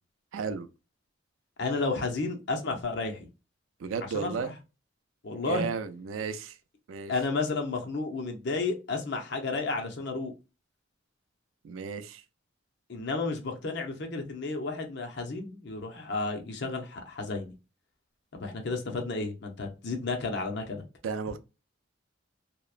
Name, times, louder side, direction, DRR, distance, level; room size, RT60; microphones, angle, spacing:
voice 1, 0.3-0.7 3.8-4.5 5.5-6.6 6.9-7.1 11.6-12.2 21.0-21.4, right 5 dB, 90° right, 0.4 m, -33 dB
voice 2, 1.6-3.3 4.0-4.5 5.2-5.7 7.1-10.3 12.9-17.5 18.3-20.8, left 3 dB, 60° left, 0.7 m, -32 dB
2.9 x 2.0 x 2.3 m
head